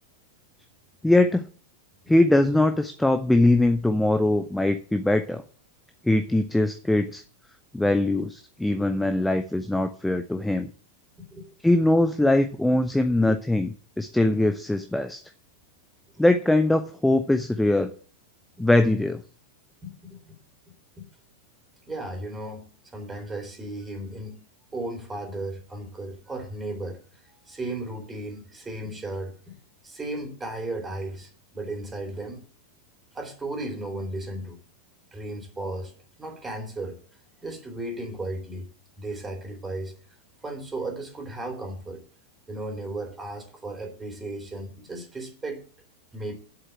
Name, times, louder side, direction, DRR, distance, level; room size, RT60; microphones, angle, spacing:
voice 1, 1.0-1.4 2.1-5.4 6.0-7.2 7.7-10.7 11.6-15.2 16.2-17.9 18.6-19.2, left 1 dB, 5° left, 8 dB, 0.8 m, -22 dB
voice 2, 19.8-20.3 21.0-21.1 21.9-22.7 22.9-24.4 24.7-27.0 27.5-29.6 29.8-32.4 33.1-34.6 35.1-35.9 36.2-37.0 37.4-38.7 39.0-39.9 40.4-42.0 42.5-45.6 46.1-46.3, right 2 dB, 15° right, 4 dB, 3.3 m, -35 dB
8.0 x 7.8 x 7.4 m, 0.42 s
figure-of-eight pair, 90°, 0 cm